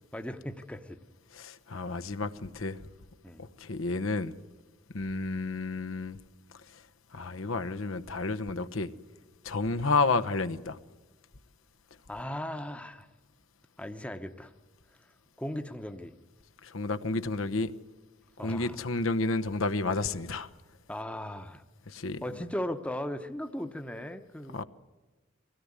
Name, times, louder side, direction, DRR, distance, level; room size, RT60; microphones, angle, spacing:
voice 1, 0.1-1.0 3.2-3.5 12.1-13.1 13.8-14.5 15.4-16.1 18.4-18.8 20.9-21.6 22.2-24.6, left 1 dB, 5° left, 0.9 m, -37 dB
voice 2, 1.3-2.8 3.4-4.3 4.9-6.2 6.7-6.8 7.1-8.9 9.4-10.8 16.6-17.7 18.4-20.5 21.9-22.2 24.5-24.6, left 3 dB, 85° left, 1.0 m, -31 dB
23.5 x 17.5 x 9.7 m
head